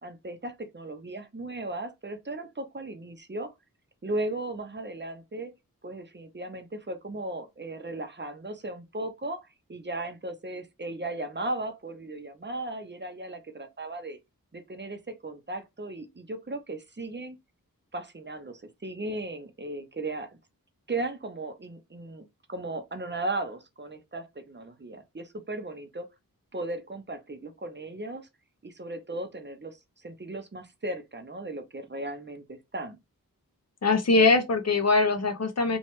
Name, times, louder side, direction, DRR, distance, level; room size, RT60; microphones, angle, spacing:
voice 1, 0.0-3.5 4.0-5.5 5.8-14.2 14.5-17.4 17.9-20.4 20.9-26.1 26.5-28.3 28.6-33.0, right 2 dB, 30° right, 0.6 m, -36 dB
voice 2, 33.8-35.8, left 3 dB, 45° left, 0.6 m, -22 dB
3.1 x 2.2 x 2.9 m
wide cardioid pair, 45°, 35 cm